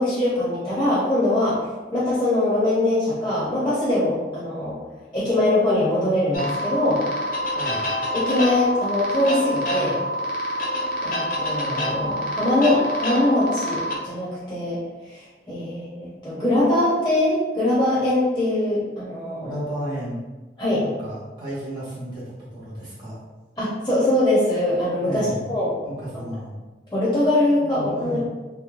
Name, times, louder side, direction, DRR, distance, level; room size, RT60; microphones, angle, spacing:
voice 1, 0.0-1.6 1.9-4.8 5.1-7.0 8.1-10.0 11.0-14.8 15.1-19.5 20.6-20.8 23.6-25.7 26.9-28.2, left 1 dB, 15° left, -9 dB, 0.7 m, -22 dB
sound 1, 6.3-14.0, equal, 50° left, 0.5 m, -27 dB
voice 2, 7.5-7.9 19.4-20.2 20.8-23.2 25.0-25.4 25.8-26.5 27.4-28.2, right 1 dB, 25° right, -9 dB, 1.3 m, -33 dB
3.1 x 2.1 x 2.5 m, 1.2 s
head